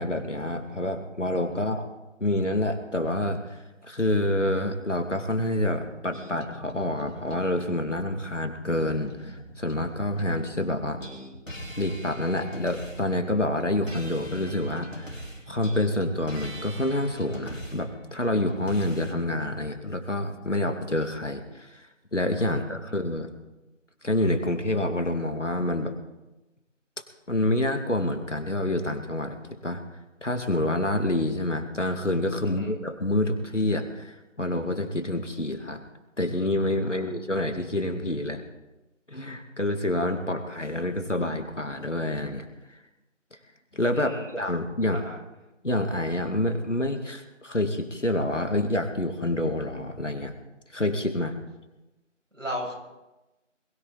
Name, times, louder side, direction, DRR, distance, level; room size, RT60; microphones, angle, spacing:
voice 1, 0.0-1.9 2.2-3.4 3.8-11.0 11.8-15.2 15.5-21.8 22.1-23.3 24.0-25.9 27.3-29.4 29.6-29.8 30.2-35.8 36.2-38.4 39.1-42.5 43.7-45.0 45.6-50.3 50.7-51.4, left 1 dB, 70° left, 6 dB, 2.4 m, -27 dB
sound 1, 6.1-10.5 10.9-19.1, equal, 85° left, 4.8 m, -41 dB
voice 2, 43.9-44.3 44.9-45.2 52.3-52.7, equal, 80° right, -1 dB, 7.2 m, -35 dB
22.0 x 14.0 x 4.0 m, 1.0 s
figure-of-eight pair, 175°, 38 cm